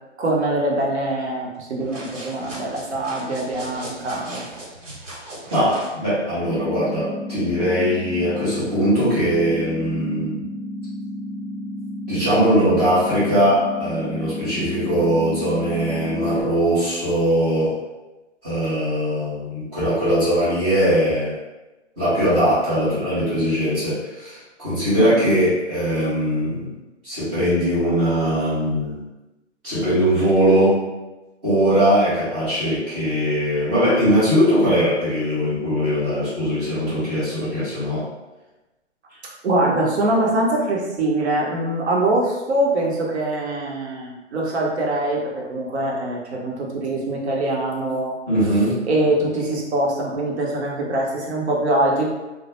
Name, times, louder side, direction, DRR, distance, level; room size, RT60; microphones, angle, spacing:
voice 1, 0.2-4.5 25.0-25.2 39.4-48.2 48.9-52.0, right 1 dB, 60° right, -2 dB, 0.8 m, -23 dB
sound 1, 1.8-6.0, right 1 dB, 85° right, 1.1 m, -37 dB
voice 2, 5.5-10.5 12.1-17.7 18.4-21.4 22.0-26.7 27.0-29.0 29.6-30.8 31.4-38.1 48.3-48.8, equal, 5° right, -13 dB, 0.4 m, -20 dB
sound 2, 6.4-16.4, left 1 dB, 50° left, 0.4 m, -32 dB
2.2 x 2.1 x 2.9 m, 1.1 s
hypercardioid pair, 135°, 37 cm